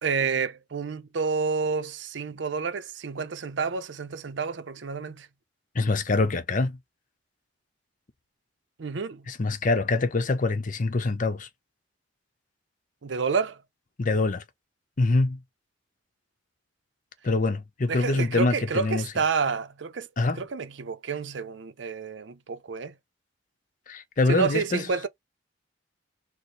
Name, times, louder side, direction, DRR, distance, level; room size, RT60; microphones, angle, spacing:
voice 1, 0.0-5.3 8.8-9.3 13.0-13.6 17.9-20.1 20.4-22.9 24.3-25.1, right 5 dB, 75° right, 0.5 m, -29 dB
voice 2, 5.7-6.8 9.3-11.5 14.0-14.4 15.0-15.4 17.2-19.0 20.2-20.4 23.9-24.9, left 3 dB, 45° left, 0.7 m, -25 dB
4.2 x 2.1 x 3.1 m
head